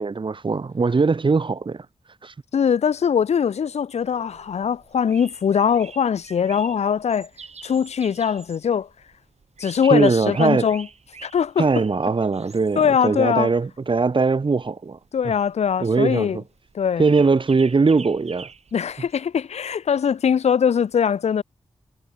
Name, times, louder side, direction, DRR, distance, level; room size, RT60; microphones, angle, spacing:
voice 1, 0.0-1.9 2.2-2.3 9.8-10.7 11.6-15.0 15.8-16.4 17.0-18.5, right 4 dB, 50° right, 1.1 m, -20 dB
voice 2, 2.5-7.3 7.6-8.9 9.6-10.9 11.2-11.7 12.8-13.5 15.1-16.4 16.7-17.0 18.7-21.4, left 7 dB, 80° left, 0.6 m, -21 dB
sound 1, 4.0-19.2, right 5 dB, 75° right, 6.0 m, -46 dB
cardioid pair, 50°, 11 cm